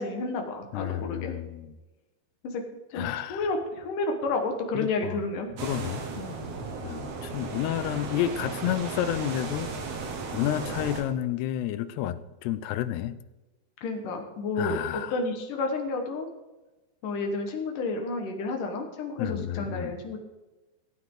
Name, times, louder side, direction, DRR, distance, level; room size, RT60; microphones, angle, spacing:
voice 1, 0.0-1.3 2.4-2.6 2.9-5.6 6.2-6.7 13.8-14.8 15.1-16.3 17.0-20.2, left 3 dB, 60° left, 4 dB, 2.8 m, -31 dB
voice 2, 0.7-1.7 2.9-3.4 4.7-5.2 5.6-6.1 6.8-9.7 10.3-13.2 14.6-15.2 19.2-20.0, left 12 dB, 85° left, 13 dB, 2.7 m, -30 dB
sound 1, 5.6-11.0, right 4 dB, 55° right, 1.9 m, -35 dB
18.5 x 9.1 x 3.9 m, 1.1 s
omnidirectional pair, 4.7 m